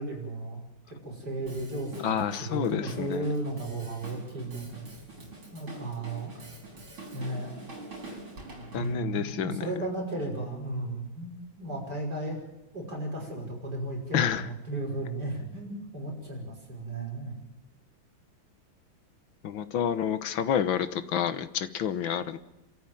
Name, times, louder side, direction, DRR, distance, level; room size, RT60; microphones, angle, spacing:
voice 1, 0.0-4.9 5.5-6.3 7.1-7.5 8.7-12.4 12.7-17.3, right 2 dB, 50° right, 0 dB, 6.4 m, -35 dB
Drum kit, 1.5-9.0, right 2 dB, 75° right, 5.8 m, -45 dB
voice 2, 2.0-3.3 8.7-9.6 14.1-14.5 19.4-22.4, left 9 dB, 75° left, 12 dB, 1.8 m, -29 dB
27.5 x 14.0 x 9.1 m, 0.98 s
omnidirectional pair, 2.2 m